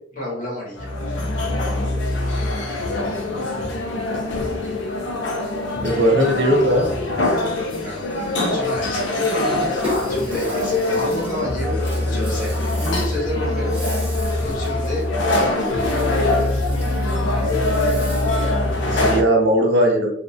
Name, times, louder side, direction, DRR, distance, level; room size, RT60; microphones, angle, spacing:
voice 1, 0.1-0.9 7.8-8.0 8.4-13.8 14.4-15.0 15.3-16.3, left 1 dB, 45° left, -5 dB, 1.0 m, -30 dB
sound 1, 0.8-19.2, left 2 dB, 70° left, 0.5 m, -23 dB
voice 2, 5.8-6.9 18.8-20.1, equal, 70° right, 1 dB, 0.7 m, -18 dB
Rattle (instrument), 9.5-18.5, equal, 30° right, 0.9 m, -36 dB
2.5 x 2.1 x 2.5 m, 0.69 s
head